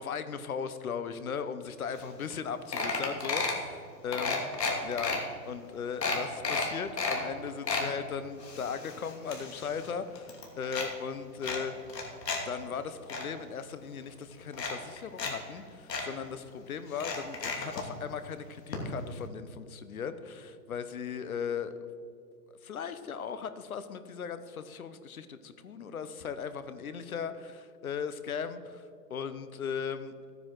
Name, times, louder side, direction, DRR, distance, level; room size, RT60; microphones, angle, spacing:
voice 1, 0.0-4.5 4.8-5.2 5.4-11.7 12.4-21.7 22.6-28.8 29.1-30.1, left 6 dB, 60° left, 12 dB, 1.0 m, -37 dB
sound 1, 2.0-2.1 2.3-2.5 2.7-3.6 4.1-5.2 5.6-5.7 6.0-7.2 7.5-7.9 8.4-9.9 10.2-10.9 11.4-12.4 12.7-13.2 14.0-14.1 14.5-15.3 15.6-15.7 15.9-16.1 16.9-17.8 18.7-18.8 19.1-19.2, left 4 dB, 80° left, 2.9 m, -32 dB
13.0 x 9.5 x 4.7 m, 2.3 s
hypercardioid pair, 160°, 49 cm